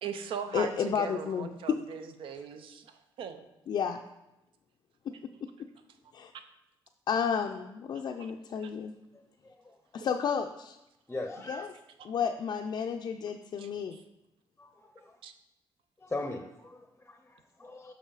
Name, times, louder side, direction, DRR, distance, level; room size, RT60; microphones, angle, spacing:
voice 1, 0.0-3.5 8.6-8.7 13.6-13.7 15.2-15.3, right 7 dB, 80° right, 8 dB, 0.6 m, -39 dB
voice 2, 0.5-1.8 3.7-4.0 5.1-5.2 5.4-5.7 6.1-6.3 7.1-8.9 9.9-10.8 11.5-11.7 12.0-14.0, left 7 dB, 60° left, 3 dB, 0.4 m, -32 dB
voice 3, 9.4-10.0 11.1-11.7 14.6-15.2 16.0-17.9, left 2 dB, 15° left, 5 dB, 0.6 m, -40 dB
6.1 x 5.6 x 3.9 m, 0.92 s
cardioid pair, 95°, 9 cm